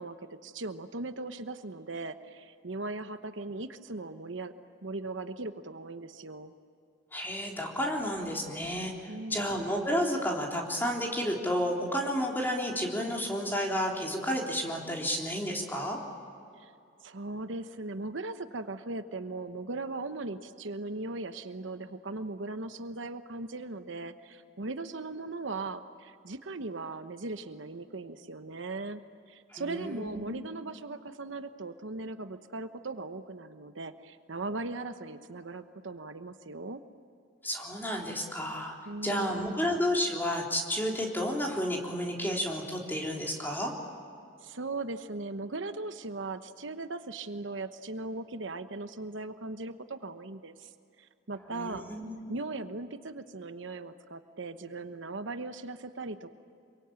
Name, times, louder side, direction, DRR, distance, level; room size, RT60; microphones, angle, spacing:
voice 1, 0.0-4.5 4.8-6.5 9.1-9.5 16.6-16.7 17.0-29.0 29.3-36.8 38.9-39.7 44.4-50.7 51.0-51.8 52.3-56.3, right 2 dB, 70° right, 9 dB, 1.0 m, -38 dB
voice 2, 7.1-16.0 29.5-30.4 37.4-38.8 39.0-43.7 51.5-52.4, equal, 10° left, -1 dB, 3.7 m, -31 dB
27.0 x 23.5 x 8.9 m, 2.5 s
head